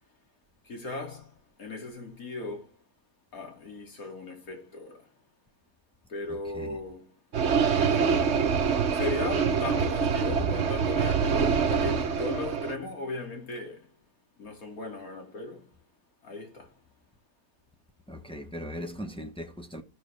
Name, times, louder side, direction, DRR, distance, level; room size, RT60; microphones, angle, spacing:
voice 1, 0.6-1.3 1.6-2.7 3.3-5.1 6.1-7.1 7.7-8.3 8.9-13.9 14.4-15.6 16.2-16.7, left 3 dB, 60° left, 2.8 m, -37 dB
voice 2, 6.3-6.8 18.1-19.8, equal, 5° left, 0.6 m, -39 dB
sound 1, 7.3-12.8, right 6 dB, 50° right, 1.1 m, -25 dB
16.0 x 6.4 x 3.3 m
omnidirectional pair, 1.7 m